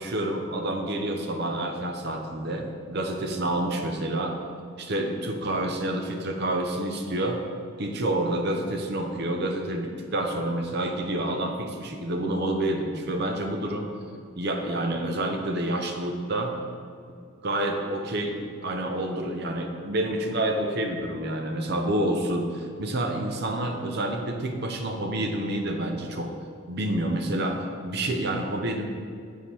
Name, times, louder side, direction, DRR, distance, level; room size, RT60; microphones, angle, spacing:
voice 1, 0.0-4.3 4.8-7.4 7.8-13.9 14.4-16.6 17.4-18.4 18.6-26.3 26.7-28.9, right 1 dB, 55° right, 3 dB, 0.7 m, -28 dB
7.3 x 4.7 x 4.3 m, 2.3 s
head